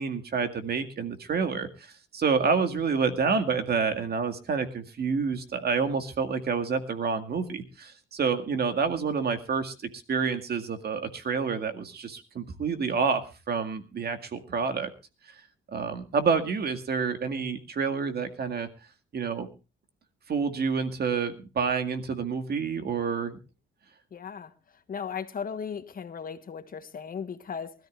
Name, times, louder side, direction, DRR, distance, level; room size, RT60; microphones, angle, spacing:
voice 1, 0.0-9.7 10.1-14.9 15.7-18.7 19.1-19.5 20.3-23.4, right 5 dB, 55° right, 2.1 m, -28 dB
voice 2, 24.1-24.5 24.9-27.7, left 6 dB, 45° left, 1.4 m, -36 dB
24.0 x 13.5 x 2.5 m
cardioid pair, 90°, 20 cm